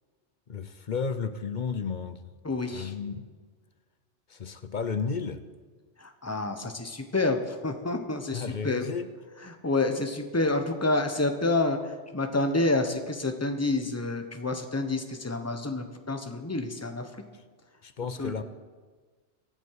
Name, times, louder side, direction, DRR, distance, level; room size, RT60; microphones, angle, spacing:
voice 1, 0.5-2.3 2.7-3.3 4.3-5.4 8.3-9.1 17.8-18.4, left 5 dB, 45° left, 11 dB, 0.8 m, -33 dB
voice 2, 2.4-2.9 6.0-8.9 9.5-17.1 18.2-18.4, left 2 dB, 15° left, 6 dB, 1.0 m, -28 dB
23.0 x 8.1 x 4.8 m, 1.4 s
omnidirectional pair, 1.2 m